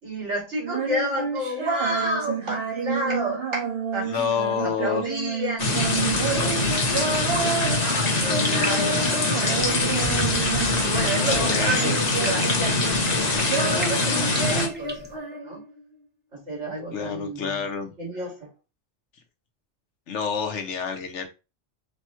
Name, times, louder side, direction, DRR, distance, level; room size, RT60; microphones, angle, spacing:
voice 1, 0.0-4.3 4.5-7.1 7.4-9.9 10.3-15.6 16.3-17.6 18.0-18.5, right 1 dB, 80° right, -3 dB, 3.0 m, -31 dB
Female singing, 0.6-10.9 11.2-12.9 13.1-15.8, right 5 dB, 60° right, 1.5 m, -30 dB
voice 2, 4.0-5.0 10.9-12.0 16.9-17.9 20.1-21.3, left 7 dB, 75° left, 6 dB, 1.2 m, -28 dB
sound 1, 5.6-14.7, left 2 dB, 40° left, 1.0 m, -23 dB
sound 2, 5.7-15.2, right 1 dB, 10° right, 0.8 m, -38 dB
5.1 x 2.3 x 4.4 m, 0.29 s
omnidirectional pair, 1.2 m